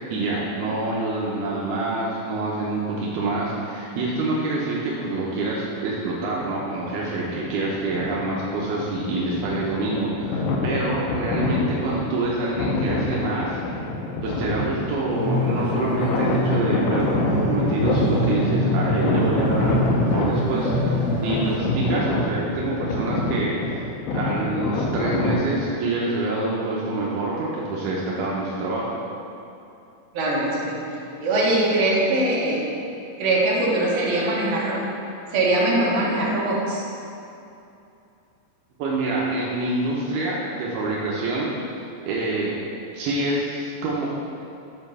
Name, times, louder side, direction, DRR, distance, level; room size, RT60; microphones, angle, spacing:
voice 1, 0.1-13.6 14.2-23.9 24.1-28.9 38.8-41.5 42.0-42.6 42.9-44.1, right 2 dB, 85° right, -5 dB, 2.9 m, -26 dB
sound 1, 6.3-7.0 7.6-25.6, left 2 dB, 75° left, 2.4 m, -26 dB
sound 2, 15.1-21.6, left 1 dB, 60° left, 1.0 m, -25 dB
voice 2, 30.1-30.8 31.2-32.6 33.2-34.8 35.3-36.8, right 2 dB, 70° right, -6 dB, 3.2 m, -22 dB
8.7 x 4.9 x 5.5 m, 2.7 s
omnidirectional pair, 4.5 m